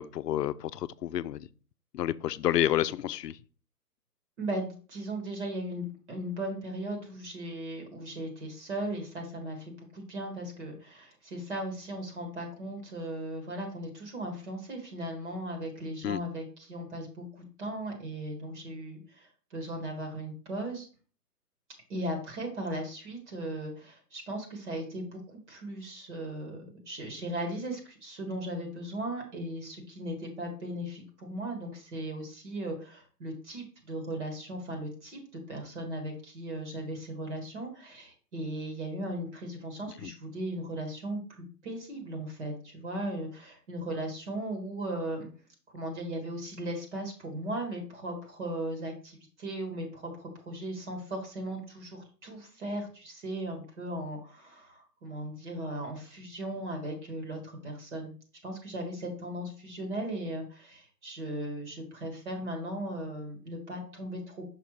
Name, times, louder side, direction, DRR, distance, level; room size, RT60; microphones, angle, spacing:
voice 1, 0.0-1.5 1.9-3.4 16.0-16.2 40.0-40.1, left 12 dB, 75° left, 0.6 m, -29 dB
voice 2, 4.4-20.9 21.9-25.2 25.5-45.3 45.7-58.1 58.4-64.5, right 1 dB, 45° right, 1.8 m, -37 dB
5.9 x 5.2 x 3.2 m
hypercardioid pair, 160°, 48 cm